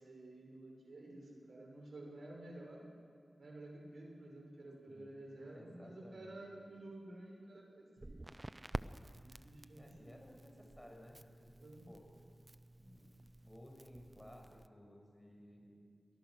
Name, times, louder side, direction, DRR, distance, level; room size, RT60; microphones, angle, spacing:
voice 1, 0.0-2.8 3.4-8.2 9.2-10.2 11.6-11.9, right 1 dB, 75° right, -1 dB, 6.2 m, -52 dB
voice 2, 5.4-6.4 9.7-12.0 12.8-13.1 13.4-15.8, equal, 5° left, 0 dB, 6.1 m, -57 dB
Crackle, 8.0-14.7, right 2 dB, 30° right, 0.7 m, -50 dB
29.5 x 24.0 x 6.5 m, 2.3 s
wide cardioid pair, 70°, 0 cm